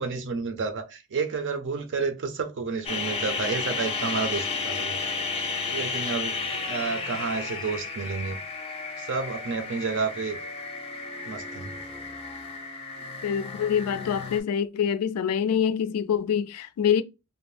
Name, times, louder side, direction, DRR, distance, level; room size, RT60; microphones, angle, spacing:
voice 1, 0.0-5.0 5.7-6.4 6.6-8.4 9.0-10.4 11.3-11.7, right 4 dB, 60° right, 0.5 m, -30 dB
sound 1, 2.8-14.4, left 4 dB, 25° left, 0.5 m, -33 dB
voice 2, 13.2-17.0, left 8 dB, 85° left, 0.3 m, -25 dB
2.6 x 2.0 x 3.1 m
head